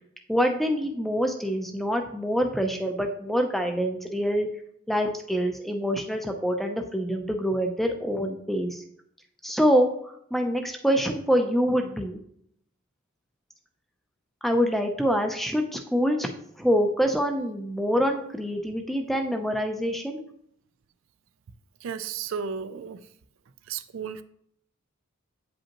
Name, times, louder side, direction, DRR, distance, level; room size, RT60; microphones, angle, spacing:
voice 1, 0.3-4.5 4.9-8.8 9.4-12.2 14.4-16.3 16.6-20.2, equal, ahead, 4 dB, 0.5 m, -25 dB
voice 2, 21.8-23.0 23.7-24.2, right 6 dB, 65° right, 11 dB, 0.4 m, -33 dB
8.6 x 5.2 x 2.9 m, 0.70 s
head